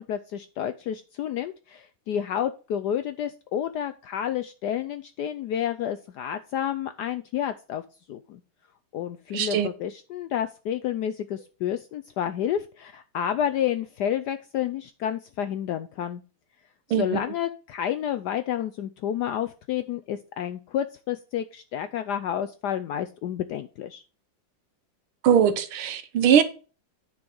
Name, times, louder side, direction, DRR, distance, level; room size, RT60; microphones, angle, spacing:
voice 1, 0.0-7.8 8.1-8.4 8.9-16.2 17.0-24.0, left 10 dB, 80° left, 0.9 m, -30 dB
voice 2, 9.3-9.7 16.9-17.2 25.2-26.4, right 8 dB, 90° right, 1.8 m, -21 dB
9.6 x 4.6 x 5.3 m
omnidirectional pair, 2.3 m